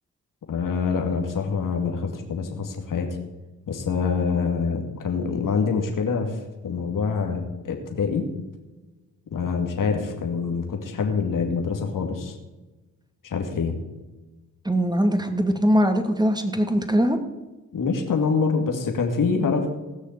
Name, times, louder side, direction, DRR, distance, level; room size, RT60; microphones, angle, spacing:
voice 1, 0.5-3.2 3.7-6.4 6.6-8.3 9.3-12.3 13.2-13.8 17.7-19.7, left 5 dB, 65° left, 3 dB, 2.4 m, -25 dB
voice 2, 14.6-17.2, equal, 10° right, 6 dB, 2.5 m, -21 dB
17.5 x 6.5 x 8.1 m, 1.1 s
supercardioid pair, 50°, 35 cm